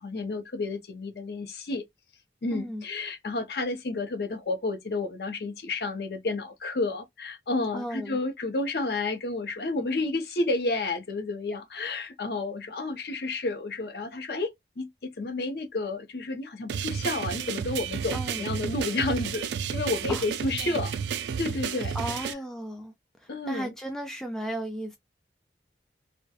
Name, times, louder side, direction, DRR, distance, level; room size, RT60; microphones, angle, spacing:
voice 1, 0.0-1.8 2.4-20.9 21.4-22.3 23.3-23.7, left 3 dB, 65° left, 0.6 m, -31 dB
voice 2, 2.5-2.8 7.7-8.2 18.1-18.4 20.1-20.2 20.6-20.8 21.9-22.9 23.2-25.0, right 1 dB, 5° left, 0.3 m, -35 dB
sound 1, 16.7-22.3, right 7 dB, 80° right, 0.3 m, -32 dB
2.3 x 2.1 x 2.6 m
head